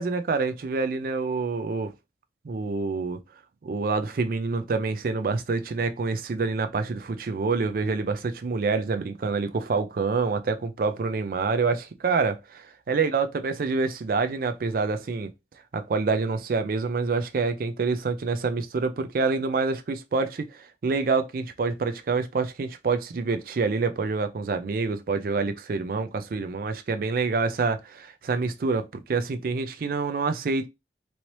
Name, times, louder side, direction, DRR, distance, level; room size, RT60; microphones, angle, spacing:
voice 1, 0.0-1.9 2.4-3.2 3.6-15.3 15.7-30.7, right 4 dB, 50° right, 0.4 m, -27 dB
3.1 x 2.7 x 2.9 m
head